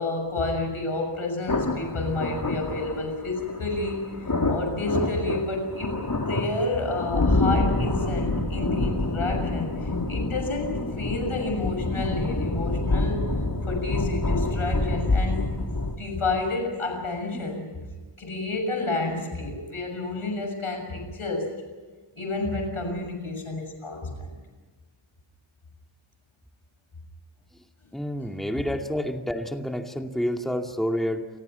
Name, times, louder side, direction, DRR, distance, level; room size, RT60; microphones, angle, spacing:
voice 1, 0.0-6.0 6.3-13.3 13.7-15.6 16.0-17.7 18.2-21.6 22.2-24.4, left 2 dB, 80° left, 4 dB, 6.8 m, -30 dB
sound 1, 1.5-16.0, left 2 dB, 45° left, 3.5 m, -27 dB
voice 2, 27.9-31.3, equal, ahead, 3 dB, 2.4 m, -29 dB
30.0 x 24.5 x 5.7 m, 1.4 s
wide cardioid pair, 55°, 49 cm